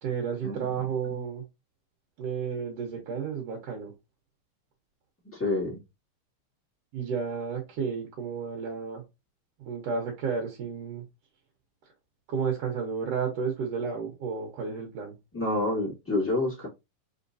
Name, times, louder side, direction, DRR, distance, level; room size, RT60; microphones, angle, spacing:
voice 1, 0.0-1.4 2.2-3.9 6.9-9.1 9.6-11.1 11.8-11.9 12.3-15.2, right 6 dB, 65° right, 1.7 m, -32 dB
voice 2, 5.3-5.8 15.3-16.7, left 2 dB, 10° left, 0.8 m, -28 dB
5.0 x 3.3 x 2.6 m
omnidirectional pair, 4.0 m